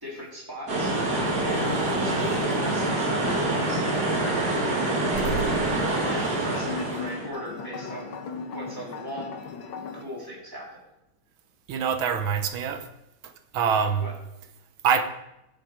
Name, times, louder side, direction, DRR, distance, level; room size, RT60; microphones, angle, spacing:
voice 1, 0.0-0.9 1.4-5.4 6.0-8.1 8.5-9.3 9.9-10.7 14.0-14.1, equal, 10° right, -5 dB, 3.3 m, -38 dB
sound 1, 0.7-7.3, right 2 dB, 50° right, 2.6 m, -26 dB
sound 2, 6.4-10.0, left 4 dB, 80° left, 1.8 m, -37 dB
voice 2, 11.7-12.9 13.5-14.1 14.8-15.0, right 7 dB, 80° right, 8 dB, 1.7 m, -24 dB
12.5 x 8.4 x 5.0 m, 0.89 s
omnidirectional pair, 2.2 m